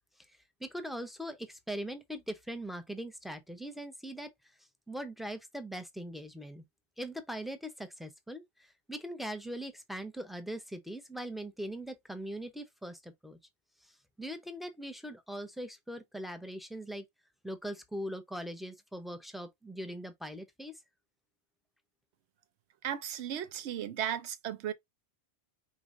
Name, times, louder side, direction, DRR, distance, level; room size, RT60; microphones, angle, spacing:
voice 1, 0.6-4.3 4.9-6.6 7.0-13.4 13.8-13.9 14.2-17.0 17.4-20.8, equal, ahead, 0.4 m, -41 dB
voice 2, 22.8-24.7, right 10 dB, 80° right, 0.9 m, -35 dB
5.0 x 3.1 x 2.5 m
omnidirectional pair, 1.1 m